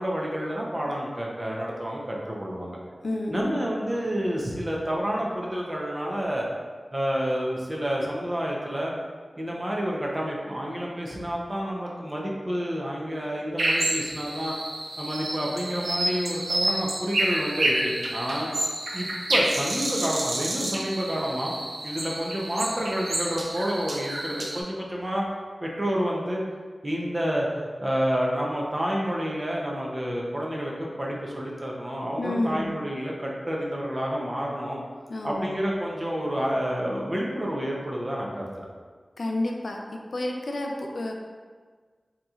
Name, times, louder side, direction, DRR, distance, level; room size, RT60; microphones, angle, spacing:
voice 1, 0.0-2.8 3.3-6.5 6.9-8.9 9.4-14.5 15.0-18.5 18.9-21.5 21.8-25.2 25.6-26.4 26.8-34.8 35.2-38.7, equal, 30° right, -3 dB, 0.7 m, -29 dB
voice 2, 3.0-3.5 32.2-32.7 35.1-35.5 39.2-39.8 40.1-41.1, left 1 dB, 70° left, 1 dB, 0.4 m, -29 dB
sound 1, 13.6-24.6, right 1 dB, 85° right, 0.5 m, -29 dB
4.0 x 2.9 x 2.4 m, 1.5 s
wide cardioid pair, 65°, 0 cm